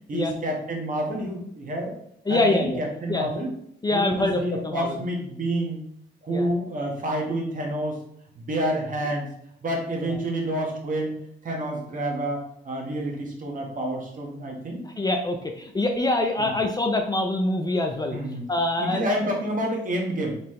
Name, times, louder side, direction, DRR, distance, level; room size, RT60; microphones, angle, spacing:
voice 1, 0.1-1.9 2.3-3.5 3.9-5.8 6.2-8.0 8.3-9.3 9.6-11.1 11.4-14.8 16.4-16.5 18.1-18.5 18.8-20.3, right 1 dB, 40° right, 0 dB, 1.4 m, -28 dB
voice 2, 2.3-2.8 3.1-3.3 3.8-5.0 6.3-6.5 10.1-10.2 14.8-18.2 18.5-19.2, left 2 dB, 20° left, 4 dB, 0.5 m, -25 dB
4.2 x 3.8 x 3.2 m, 0.71 s
cardioid pair, 90°, 20 cm